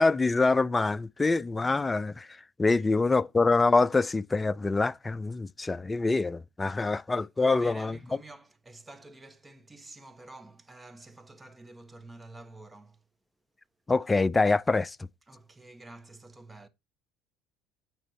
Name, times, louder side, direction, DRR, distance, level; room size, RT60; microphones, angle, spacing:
voice 1, 0.0-8.0 13.9-15.0, left 3 dB, 20° left, 0.4 m, -25 dB
voice 2, 7.2-13.0 15.3-16.7, right 2 dB, 15° right, 1.4 m, -49 dB
9.1 x 6.1 x 4.2 m
hypercardioid pair, 70°, 0 cm